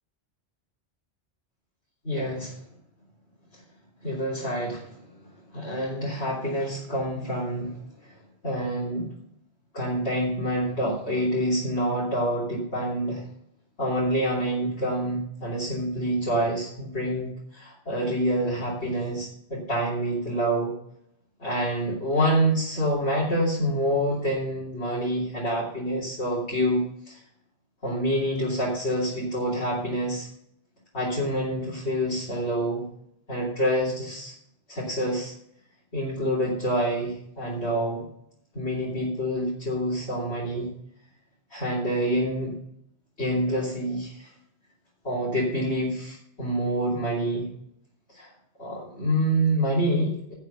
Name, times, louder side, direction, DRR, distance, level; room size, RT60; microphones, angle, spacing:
voice 1, 2.0-2.6 4.0-9.1 9.7-13.2 13.8-20.7 21.4-27.2 27.8-30.3 30.9-32.9 33.3-34.3 34.7-35.3 35.9-38.0 38.5-40.7 41.5-42.5 43.2-44.3 45.0-47.5 48.1-48.3 48.6-50.3, equal, 85° left, -8 dB, 3.5 m, -27 dB
11.0 x 5.8 x 6.8 m, 0.71 s
omnidirectional pair, 1.1 m